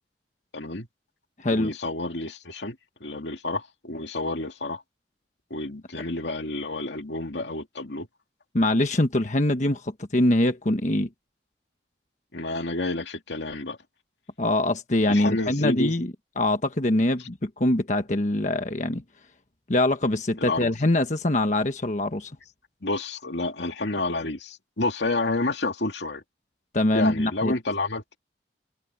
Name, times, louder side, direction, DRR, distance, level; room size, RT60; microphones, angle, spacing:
voice 1, 0.5-0.9 1.5-2.8 3.0-4.8 5.5-8.1 12.3-13.8 15.1-15.9 20.4-20.7 22.8-26.2 26.9-28.2, left 2 dB, 85° left, 2.5 m, -29 dB
voice 2, 1.4-1.7 8.5-11.1 14.4-19.0 19.7-22.3 26.7-27.5, left 1 dB, 45° left, 1.3 m, -23 dB
head